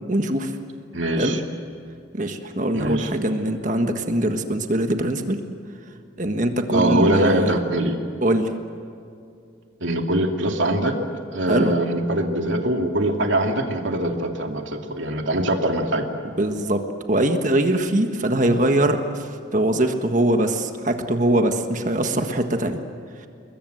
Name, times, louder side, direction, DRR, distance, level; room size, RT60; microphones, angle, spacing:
voice 1, 0.1-0.5 1.2-1.3 2.1-5.4 6.2-7.6 8.2-8.5 11.5-11.7 16.2-16.8 17.1-19.3 19.5-22.8, right 1 dB, 40° right, 6 dB, 1.5 m, -22 dB
voice 2, 0.9-1.4 2.7-3.1 6.7-8.0 9.8-10.9 11.3-16.0, right 1 dB, 90° right, 3 dB, 2.5 m, -22 dB
29.0 x 21.5 x 8.0 m, 2.4 s
head